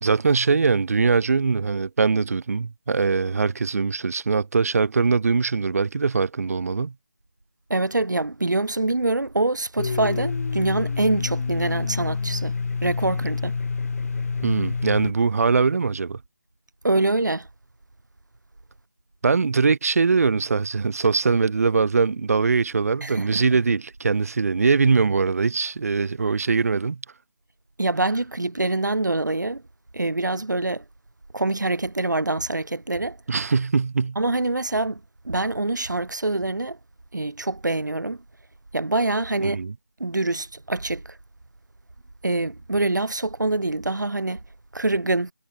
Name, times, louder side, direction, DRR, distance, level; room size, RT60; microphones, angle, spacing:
voice 1, 0.0-6.9 14.4-16.2 19.2-27.0 33.3-34.2 39.4-39.7, right 4 dB, 55° right, 0.4 m, -22 dB
voice 2, 7.7-12.5 12.8-13.6 16.8-17.5 23.0-23.3 27.8-29.6 29.9-30.8 31.3-33.2 34.1-35.0 35.2-36.8 37.1-38.2 38.7-39.6 40.0-41.2 42.2-44.4 44.7-45.3, right 2 dB, 90° right, 1.3 m, -25 dB
Domestic sounds home sounds, 9.8-15.1, left 4 dB, 55° left, 0.4 m, -27 dB
figure-of-eight pair, 165°, 10 cm